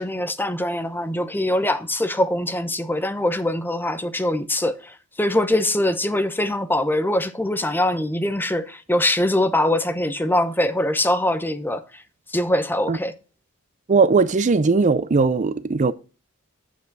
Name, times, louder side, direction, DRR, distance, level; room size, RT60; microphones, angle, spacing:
voice 1, 0.0-12.0 12.3-13.1, left 1 dB, 10° left, 0.8 m, -23 dB
voice 2, 13.9-15.9, right 4 dB, 35° right, 0.5 m, -18 dB
9.2 x 7.5 x 4.0 m
head